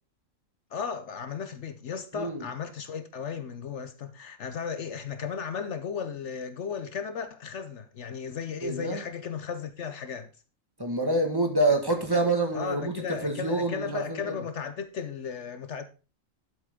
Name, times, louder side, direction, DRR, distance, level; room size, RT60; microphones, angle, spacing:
voice 1, 0.7-10.3 12.5-15.8, left 6 dB, 65° left, 1.0 m, -35 dB
voice 2, 2.1-2.4 8.6-9.0 10.8-14.3, right 2 dB, 15° right, 1.6 m, -27 dB
11.0 x 7.7 x 3.7 m
omnidirectional pair, 1.4 m